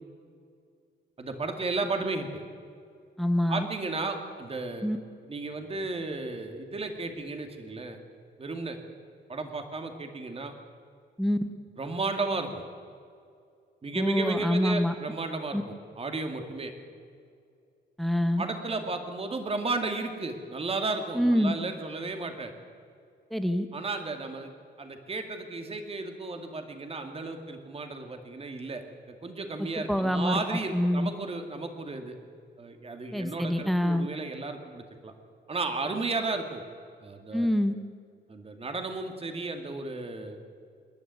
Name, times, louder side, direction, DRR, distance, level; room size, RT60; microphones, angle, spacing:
voice 1, 1.2-2.3 3.5-4.9 5.3-8.0 8.4-8.8 9.3-10.5 11.8-12.6 13.8-16.7 18.4-22.5 23.7-24.5 24.8-32.2 32.6-35.1 35.5-36.6 37.0-37.5 38.3-40.4, right 3 dB, 30° right, 5 dB, 2.3 m, -34 dB
voice 2, 3.2-3.7 4.8-5.0 11.2-11.4 13.9-14.9 15.5-15.6 18.0-18.4 21.1-21.5 23.3-23.7 29.6-30.4 30.7-31.1 33.1-34.1 37.3-37.7, equal, ahead, 8 dB, 1.2 m, -26 dB
27.5 x 11.5 x 9.6 m, 2.3 s
wide cardioid pair, 135°, 19 cm